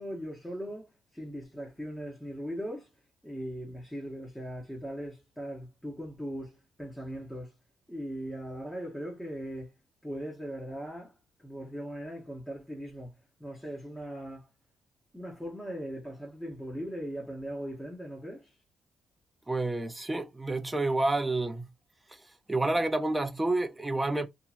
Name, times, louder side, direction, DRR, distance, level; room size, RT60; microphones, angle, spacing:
voice 1, 0.0-2.9 3.2-7.5 7.9-9.7 10.0-11.1 11.4-13.1 13.4-14.5 15.1-18.5, equal, 5° left, 1.0 m, -39 dB
voice 2, 19.5-21.7 22.1-22.2 22.5-24.3, right 2 dB, 15° right, 0.5 m, -29 dB
2.8 x 2.5 x 2.4 m
cardioid pair, 90°, 0 cm